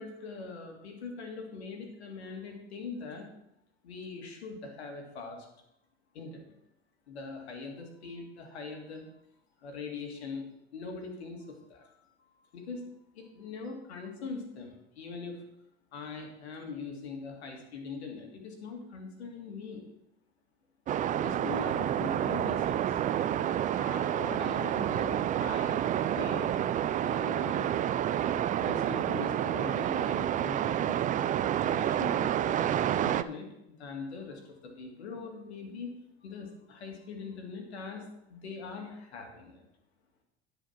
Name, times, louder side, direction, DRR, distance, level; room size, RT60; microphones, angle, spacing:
voice 1, 0.0-3.3 3.8-5.5 6.1-6.5 7.1-9.0 9.6-11.9 12.2-12.9 13.2-15.4 15.9-19.8 21.2-22.9 23.8-25.8 26.1-26.6 26.8-27.8 28.6-31.0 31.6-35.9 36.2-39.6, left 4 dB, 85° left, 2 dB, 2.1 m, -42 dB
sound 1, 20.9-33.2, right 11 dB, 25° right, 0.3 m, -29 dB
10.5 x 5.0 x 5.8 m, 0.85 s
hypercardioid pair, 90°, 32 cm